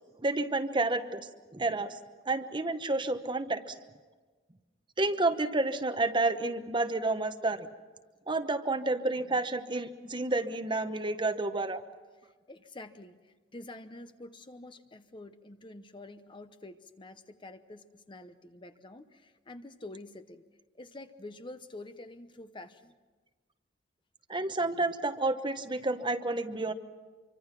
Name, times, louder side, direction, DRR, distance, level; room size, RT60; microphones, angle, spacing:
voice 1, 0.2-2.0 2.2-3.8 5.0-7.7 8.3-11.8 24.3-26.7, right 2 dB, 25° right, 9 dB, 1.0 m, -30 dB
voice 2, 12.5-20.4 20.7-22.9, left 2 dB, 25° left, 9 dB, 0.9 m, -47 dB
26.0 x 24.5 x 5.9 m, 1.3 s
head